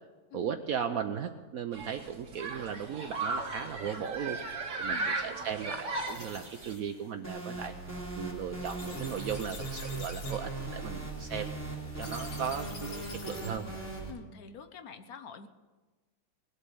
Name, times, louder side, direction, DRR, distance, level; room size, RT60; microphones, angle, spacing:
voice 1, 0.3-4.4 4.8-7.7 8.2-11.5 12.0-13.6, right 7 dB, 80° right, 7 dB, 0.7 m, -37 dB
Human group actions, 1.7-6.7, right 3 dB, 55° right, 2.4 m, -36 dB
sound 1, 5.6-13.7, left 4 dB, 85° left, 3.0 m, -49 dB
sound 2, 7.2-14.1, right 2 dB, 5° left, 3.1 m, -39 dB
voice 2, 14.1-15.5, left 6 dB, 55° left, 8 dB, 1.1 m, -46 dB
19.5 x 8.2 x 8.5 m, 1.3 s
omnidirectional pair, 2.4 m